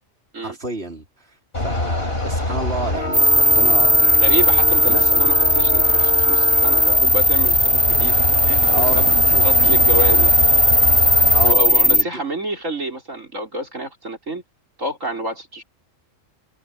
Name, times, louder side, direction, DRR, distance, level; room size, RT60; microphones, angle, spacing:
voice 1, 0.4-4.5 4.9-5.3 8.7-10.3 11.3-12.1, right 2 dB, 50° right, 4.4 m, -31 dB
sound 1, 1.5-11.5, left 1 dB, 50° left, 5.2 m, -25 dB
sound 2, 3.1-12.0, left 1 dB, 15° left, 0.7 m, -16 dB
voice 2, 4.2-8.2 8.5-9.0 9.4-10.5 11.4-14.4 14.8-15.6, right 1 dB, 75° right, 5.8 m, -28 dB
omnidirectional pair, 1.3 m